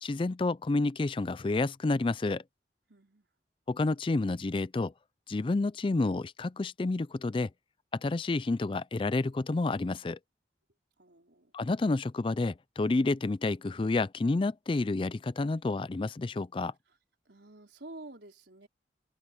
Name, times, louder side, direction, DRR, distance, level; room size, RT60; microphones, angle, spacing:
voice 1, 0.0-2.4 3.7-4.9 5.3-7.5 7.9-10.2 11.5-16.7, left 3 dB, 30° left, 0.4 m, -29 dB
voice 2, 2.9-3.3 11.0-11.5 17.3-18.7, right 2 dB, 75° right, 4.2 m, -49 dB
head